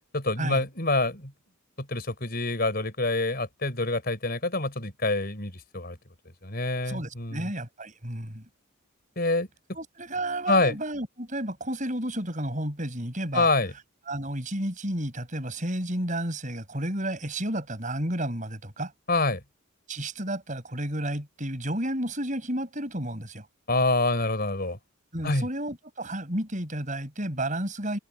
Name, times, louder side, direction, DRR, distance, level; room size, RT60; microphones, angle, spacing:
voice 1, 0.1-1.3 1.8-6.0 6.4-7.5 9.2-9.5 10.5-10.8 13.3-13.7 19.1-19.4 23.7-24.8 25.2-25.5, left 2 dB, 45° left, 4.9 m, -26 dB
voice 2, 6.8-8.4 9.7-13.5 14.1-18.9 19.9-23.5 25.1-28.0, right 1 dB, 35° right, 5.9 m, -32 dB
head